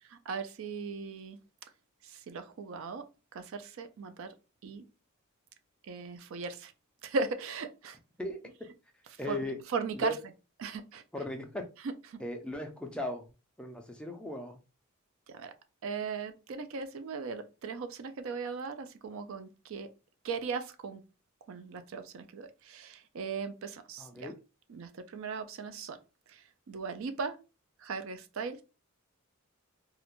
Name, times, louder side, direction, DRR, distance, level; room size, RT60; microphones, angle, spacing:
voice 1, 0.3-1.4 2.0-3.0 3.3-4.3 4.6-4.8 5.8-6.7 7.0-8.0 9.3-9.4 9.7-10.2 10.6-11.0 11.8-12.2 15.3-15.5 15.8-19.9 20.2-21.0 21.5-24.3 24.7-26.0 26.3-27.4 27.8-28.6, right 4 dB, 65° right, 0.4 m, -38 dB
voice 2, 9.2-9.6 9.9-10.2 11.1-11.7 12.2-13.3 13.6-14.6 24.0-24.3, left 1 dB, 5° left, 0.3 m, -37 dB
2.4 x 2.1 x 2.9 m
head